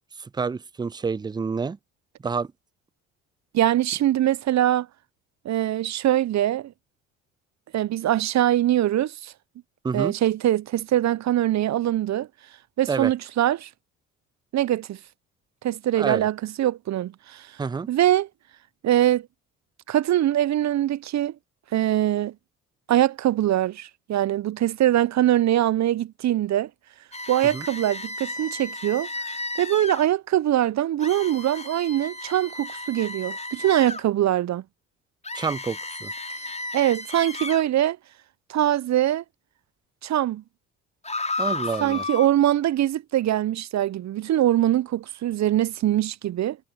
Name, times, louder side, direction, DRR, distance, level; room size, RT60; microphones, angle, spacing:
voice 1, 0.2-1.8 2.2-2.5 9.8-10.1 12.9-13.1 15.9-16.3 17.6-17.9 27.5-27.7 35.3-36.1 41.4-42.0, right 5 dB, 10° right, 0.5 m, -28 dB
voice 2, 3.5-4.9 5.4-6.7 7.7-9.3 9.9-12.3 12.8-13.7 14.5-15.0 15.6-17.5 17.9-18.3 18.8-19.3 19.9-21.3 21.7-22.3 22.9-26.7 27.3-29.1 29.6-34.6 36.7-38.0 38.5-39.2 40.0-40.4 41.8-46.6, right 12 dB, 45° right, 1.0 m, -23 dB
sound 1, 27.1-30.1 31.0-34.0 35.2-37.6 41.0-42.3, left 2 dB, 15° left, 7.1 m, -33 dB
figure-of-eight pair, 55°, 38 cm